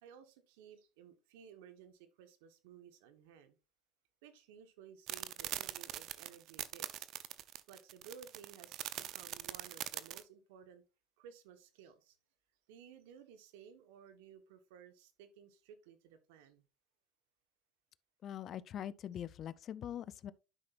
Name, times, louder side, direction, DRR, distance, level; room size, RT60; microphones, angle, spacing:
voice 1, 0.0-3.6 4.2-7.1 7.7-10.8 11.2-12.2 12.7-16.6, right 7 dB, 85° right, 1.3 m, -57 dB
sound 1, 5.1-10.2, right 13 dB, 60° right, 0.6 m, -42 dB
voice 2, 18.2-20.3, left 10 dB, 45° left, 0.5 m, -43 dB
10.5 x 5.8 x 2.5 m
supercardioid pair, 105°, 0 cm